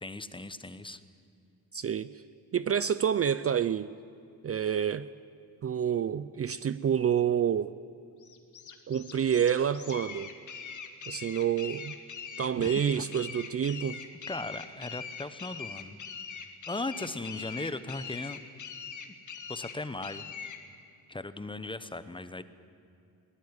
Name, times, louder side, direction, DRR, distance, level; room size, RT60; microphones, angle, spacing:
voice 1, 0.0-1.0 12.6-12.8 14.3-16.0 16.7-18.4 19.5-20.5 21.1-22.4, left 2 dB, 15° left, 12 dB, 0.8 m, -37 dB
voice 2, 1.7-2.1 2.5-3.9 4.4-5.1 5.6-7.7 8.9-10.3 11.1-11.9 12.4-14.0, right 8 dB, 40° right, 15 dB, 0.5 m, -28 dB
sound 1, 8.2-20.6, left 6 dB, 50° left, 2.0 m, -42 dB
23.0 x 18.5 x 9.7 m, 2.5 s
wide cardioid pair, 150°, 38 cm